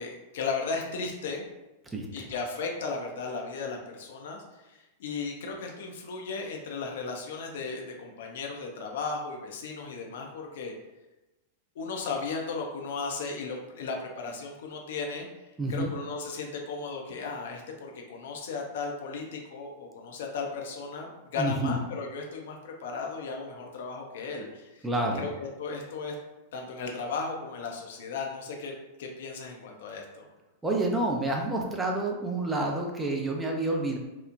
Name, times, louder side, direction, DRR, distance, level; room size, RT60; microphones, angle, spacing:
voice 1, 0.0-1.4 2.1-10.7 11.8-15.3 15.7-24.9 25.1-26.1 26.5-30.3, left 4 dB, 60° left, 1 dB, 0.5 m, -36 dB
voice 2, 1.9-2.2 15.6-15.9 21.4-21.7 24.8-25.2 30.6-34.0, right 2 dB, 10° right, -1 dB, 0.5 m, -28 dB
2.9 x 2.0 x 2.4 m, 1.0 s
figure-of-eight pair, 95°, 0 cm